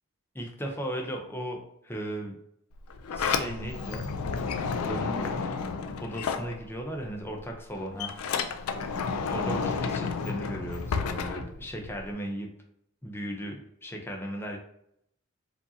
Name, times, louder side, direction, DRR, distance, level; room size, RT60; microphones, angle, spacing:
voice 1, 0.3-2.3 3.1-4.1 4.7-5.5 6.0-8.1 9.3-12.5 13.0-14.6, equal, 10° left, 1 dB, 0.5 m, -36 dB
Sliding door, 2.7-7.1 7.4-12.1, left 5 dB, 85° left, 0.4 m, -31 dB
4.7 x 2.6 x 2.7 m, 0.73 s
head